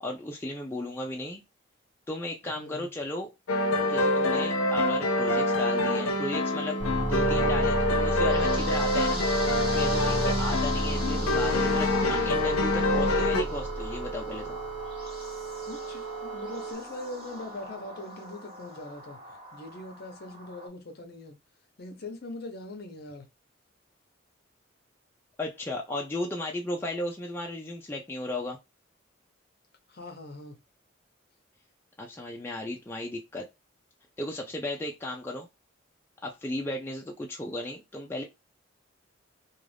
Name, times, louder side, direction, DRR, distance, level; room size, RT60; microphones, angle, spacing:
voice 1, 0.0-1.4 2.1-3.3 3.9-6.8 7.1-9.3 9.7-14.6 25.4-28.6 32.0-33.5 34.2-35.5 36.2-38.2, left 1 dB, 10° left, 0.4 m, -35 dB
voice 2, 2.4-2.9 15.6-21.4 21.8-23.3 29.9-30.6, left 2 dB, 50° left, 0.7 m, -42 dB
sound 1, 3.5-13.4, left 2 dB, 90° left, 0.5 m, -26 dB
sound 2, 5.9-16.7, right 7 dB, 60° right, 0.4 m, -39 dB
sound 3, 6.8-20.7, equal, 30° right, 1.0 m, -34 dB
2.4 x 2.3 x 3.2 m
head